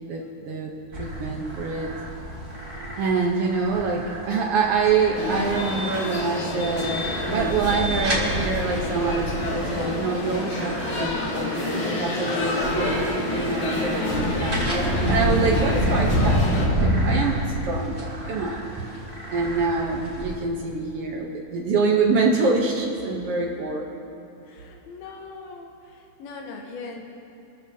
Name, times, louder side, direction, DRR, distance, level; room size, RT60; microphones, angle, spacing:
voice 1, 0.0-1.9 3.0-10.7 11.0-11.5 11.8-18.6 19.3-23.9, right 4 dB, 75° right, -2 dB, 1.3 m, -26 dB
sound 1, 0.9-20.4, equal, 20° right, 2.3 m, -29 dB
sound 2, 5.2-16.7, left 1 dB, 55° left, 3.9 m, -28 dB
voice 2, 24.4-27.0, left 4 dB, 85° left, 0 dB, 3.0 m, -40 dB
26.0 x 14.0 x 2.8 m, 2.7 s
omnidirectional pair, 4.2 m